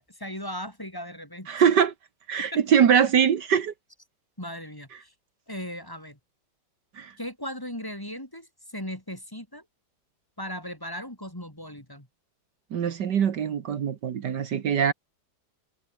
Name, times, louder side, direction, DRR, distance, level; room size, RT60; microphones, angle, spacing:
voice 1, 0.0-1.5 2.4-2.6 4.4-5.1 5.5-6.2 7.2-9.6 10.4-12.1, equal, 10° left, 3.9 m, -37 dB
voice 2, 1.5-1.9 2.3-3.7 7.0-7.1 12.7-14.9, right 8 dB, 70° right, 1.9 m, -22 dB
omnidirectional pair, 1.9 m